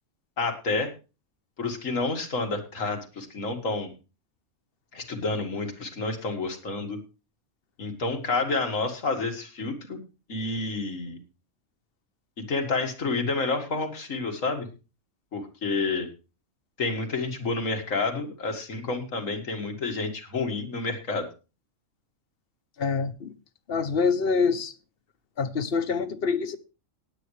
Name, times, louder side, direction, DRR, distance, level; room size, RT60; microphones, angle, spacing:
voice 1, 0.4-0.9 1.6-3.9 4.9-7.0 7.8-10.0 10.3-11.2 12.4-14.7 15.3-16.1 16.8-21.3, left 3 dB, 90° left, 2.3 m, -29 dB
voice 2, 22.8-23.3 23.7-24.7 25.4-26.6, left 5 dB, 50° left, 1.0 m, -25 dB
18.5 x 8.7 x 3.2 m
omnidirectional pair, 1.3 m